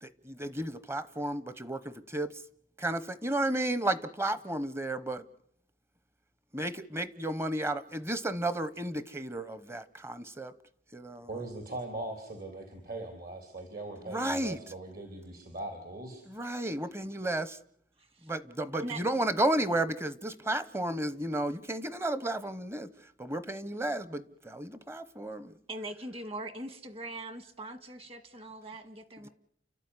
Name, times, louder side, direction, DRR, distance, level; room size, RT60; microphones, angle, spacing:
voice 1, 0.0-2.3 2.8-5.3 6.5-10.5 10.9-11.3 14.1-14.6 16.3-17.4 18.3-22.9 23.2-25.5 29.2-29.3, right 1 dB, 15° right, 15 dB, 1.0 m, -33 dB
voice 2, 11.3-16.2, right 2 dB, 55° right, 5 dB, 3.5 m, -40 dB
voice 3, 25.7-29.3, right 2 dB, 35° right, 11 dB, 1.9 m, -41 dB
29.5 x 13.0 x 9.8 m, 0.72 s
head